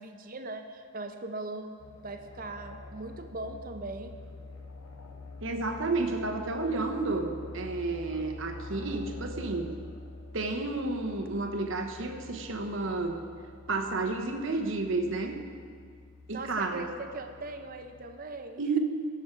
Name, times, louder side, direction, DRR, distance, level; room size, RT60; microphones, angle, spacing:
voice 1, 0.0-1.7 2.0-4.1 16.3-18.8, right 2 dB, 40° right, 6 dB, 0.8 m, -40 dB
sound 1, 1.8-18.1, left 2 dB, 80° left, 1.1 m, -46 dB
voice 2, 5.4-9.8 10.3-13.2 13.7-15.4 16.3-16.9 18.6-18.8, right 3 dB, 60° right, 4 dB, 1.0 m, -31 dB
16.5 x 7.2 x 4.6 m, 2.2 s
head